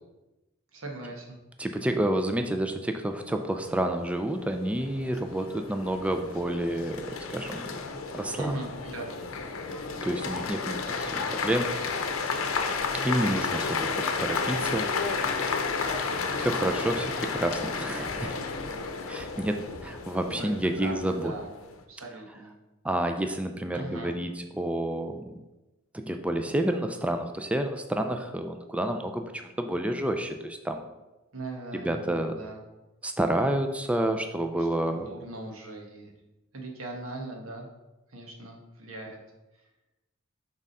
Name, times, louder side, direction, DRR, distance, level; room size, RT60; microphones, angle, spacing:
voice 1, 0.7-1.4 8.4-9.1 20.2-21.5 21.9-22.5 23.7-24.1 31.3-32.6 34.6-36.1 36.5-37.7 38.1-39.2, right 2 dB, 90° right, 1 dB, 1.3 m, -39 dB
voice 2, 1.6-7.0 7.3-7.7 8.1-8.5 10.0-11.7 13.0-13.9 14.2-14.9 15.5-15.9 16.4-18.4 19.1-21.3 22.8-25.4 25.9-30.8 31.7-32.3 33.0-35.1, right 1 dB, 5° right, 6 dB, 0.3 m, -29 dB
sound 1, 3.6-21.8, left 4 dB, 90° left, 0.7 m, -32 dB
6.4 x 3.6 x 5.3 m, 1.0 s
head